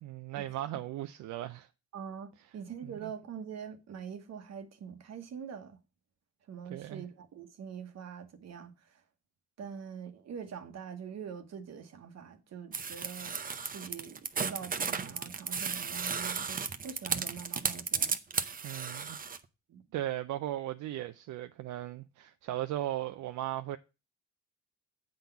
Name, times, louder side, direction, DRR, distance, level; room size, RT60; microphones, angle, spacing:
voice 1, 0.0-1.7 2.8-3.1 6.6-7.0 18.6-19.2 19.9-23.8, right 13 dB, 75° right, 0.5 m, -37 dB
voice 2, 1.9-5.8 6.5-8.7 9.6-13.4 13.7-18.2 19.7-19.8, right 7 dB, 60° right, 1.2 m, -44 dB
sound 1, 12.7-19.4, right 5 dB, 30° right, 0.7 m, -34 dB
8.8 x 3.9 x 6.9 m
cardioid pair, 90°, 30 cm